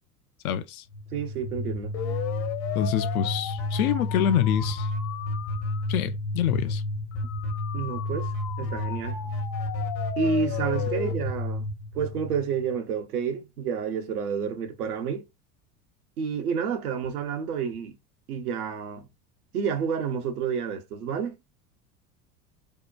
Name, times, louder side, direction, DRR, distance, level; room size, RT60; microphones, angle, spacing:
voice 1, 0.4-0.8 2.8-4.9 5.9-6.8, left 10 dB, 75° left, 0.5 m, -26 dB
sound 1, 0.9-12.7, left 2 dB, 55° left, 0.9 m, -30 dB
voice 2, 1.1-1.9 7.7-8.3 8.6-9.2 10.2-11.7 11.9-15.2 16.2-18.0 18.3-19.1 19.5-21.4, right 6 dB, 85° right, 0.7 m, -29 dB
2.8 x 2.2 x 2.3 m
hypercardioid pair, 85°, 44 cm